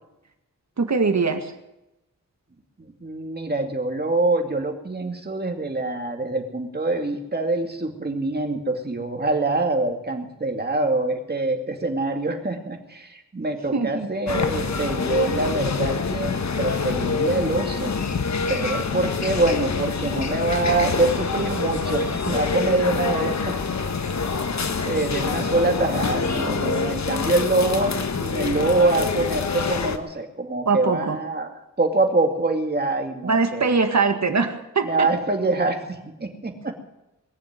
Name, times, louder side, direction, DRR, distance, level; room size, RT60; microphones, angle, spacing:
voice 1, 0.8-1.5 13.7-14.1 30.7-31.2 33.2-35.1, right 4 dB, 55° right, 6 dB, 1.9 m, -22 dB
voice 2, 3.0-17.9 18.5-23.6 24.8-33.7 34.8-36.7, right 2 dB, 30° right, 3 dB, 2.4 m, -25 dB
sound 1, 14.3-30.0, left 4 dB, 55° left, 1.3 m, -26 dB
21.0 x 7.3 x 9.5 m, 0.93 s
wide cardioid pair, 80°, 32 cm